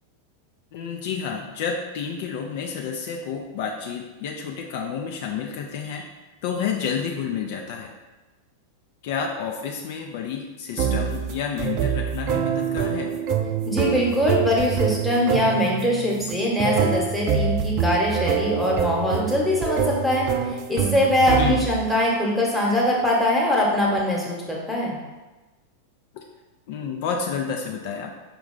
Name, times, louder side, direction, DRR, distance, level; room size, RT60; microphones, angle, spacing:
voice 1, 0.7-6.0 6.4-7.9 9.0-13.1 21.4-21.6 26.1-26.2 26.7-28.1, left 6 dB, 50° left, 1 dB, 0.4 m, -30 dB
sound 1, 10.8-21.9, right 7 dB, 40° right, 0.3 m, -25 dB
voice 2, 13.7-20.2 20.7-25.0, left 1 dB, ahead, -4 dB, 1.0 m, -22 dB
5.1 x 2.3 x 3.8 m, 1.2 s
figure-of-eight pair, 90°, 0 cm